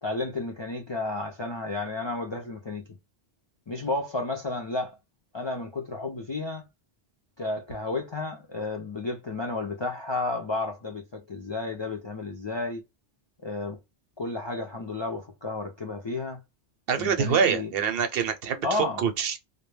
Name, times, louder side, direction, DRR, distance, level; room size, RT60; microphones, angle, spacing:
voice 1, 0.0-2.9 3.7-4.9 5.3-6.7 7.4-12.8 13.4-13.8 14.2-16.4 17.0-17.7 18.6-19.0, left 2 dB, 45° left, 0.4 m, -32 dB
voice 2, 16.9-19.4, right 7 dB, 65° right, 0.7 m, -25 dB
2.1 x 2.1 x 3.2 m
omnidirectional pair, 1.1 m